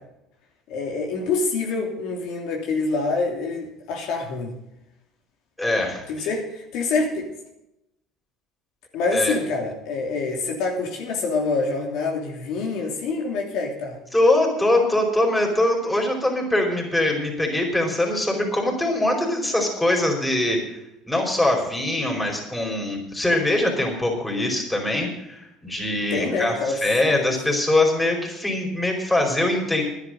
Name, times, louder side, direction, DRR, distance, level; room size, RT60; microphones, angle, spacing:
voice 1, 0.7-4.5 6.1-7.3 8.9-14.0 25.9-26.8 27.0-27.3, left 3 dB, 70° left, 1 dB, 2.9 m, -26 dB
voice 2, 5.6-6.3 9.1-9.4 14.1-20.8 21.1-29.8, left 1 dB, 10° left, 1 dB, 4.9 m, -22 dB
11.5 x 9.9 x 7.8 m, 0.85 s
supercardioid pair, 95°, 0 cm